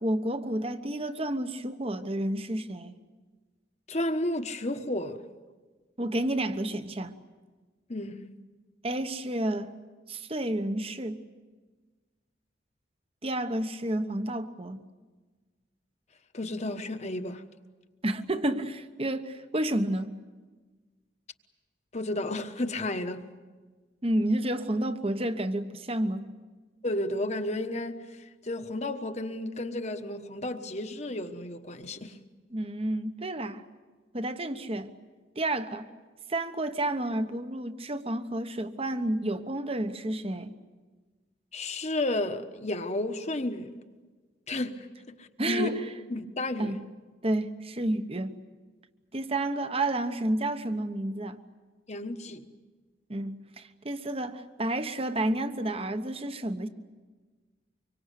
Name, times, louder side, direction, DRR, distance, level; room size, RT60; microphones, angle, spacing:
voice 1, 0.0-3.0 6.0-7.1 8.8-9.7 10.1-11.2 13.2-14.8 18.0-20.2 24.0-26.3 32.5-33.6 34.1-34.9 35.4-35.9 36.3-40.6 45.4-45.9 46.6-46.8 47.2-48.4 49.1-51.4 53.1-56.7, right 1 dB, 30° right, 1.1 m, -30 dB
voice 2, 3.9-5.2 7.9-8.2 16.3-17.4 21.9-23.2 26.8-32.2 41.5-43.7 44.5-44.9 45.2-45.7 46.1-46.8 51.9-52.4, left 1 dB, 35° left, 1.3 m, -32 dB
25.5 x 24.0 x 8.4 m
head